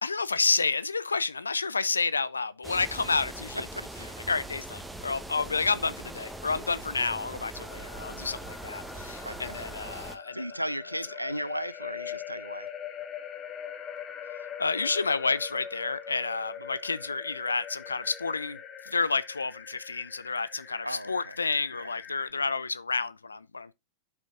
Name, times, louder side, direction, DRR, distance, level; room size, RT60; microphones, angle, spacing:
voice 1, 0.0-3.7 4.3-10.4 14.6-18.6 18.9-23.7, left 4 dB, 75° left, 0.5 m, -30 dB
sound 1, 2.6-10.2, right 1 dB, 5° right, 1.0 m, -41 dB
voice 2, 3.7-4.2 9.2-9.6 10.3-12.7 20.8-21.4 21.7-22.0, equal, 90° right, 0.4 m, -36 dB
sound 2, 7.5-22.3, left 8 dB, 30° left, 1.3 m, -43 dB
12.0 x 5.1 x 2.5 m
figure-of-eight pair, 90°, 0 cm